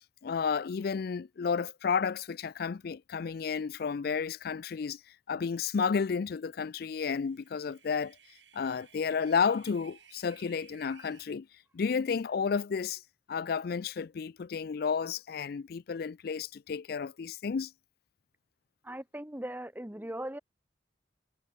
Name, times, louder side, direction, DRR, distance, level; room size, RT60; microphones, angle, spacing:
voice 1, 0.2-5.0 5.3-8.2 8.5-11.5 11.7-13.0 13.3-17.7, left 6 dB, 55° left, 0.4 m, -32 dB
sound 1, 7.1-11.3, right 8 dB, 90° right, 6.0 m, -59 dB
voice 2, 18.8-20.4, right 1 dB, 10° right, 1.3 m, -39 dB
head